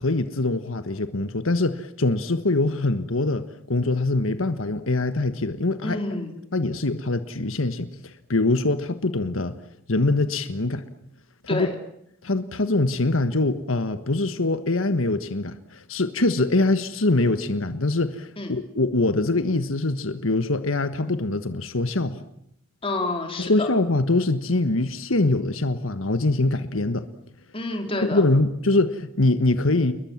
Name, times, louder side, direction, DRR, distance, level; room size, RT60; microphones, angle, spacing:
voice 1, 0.0-6.0 6.5-9.5 9.9-10.8 11.5-11.7 12.2-22.2 23.4-27.1 28.0-29.9, left 2 dB, 85° left, 10 dB, 1.5 m, -23 dB
voice 2, 5.8-6.4 11.5-11.7 18.4-18.5 22.8-23.7 27.5-28.2, left 2 dB, 25° left, 3 dB, 4.3 m, -28 dB
29.0 x 22.0 x 7.4 m, 0.74 s
head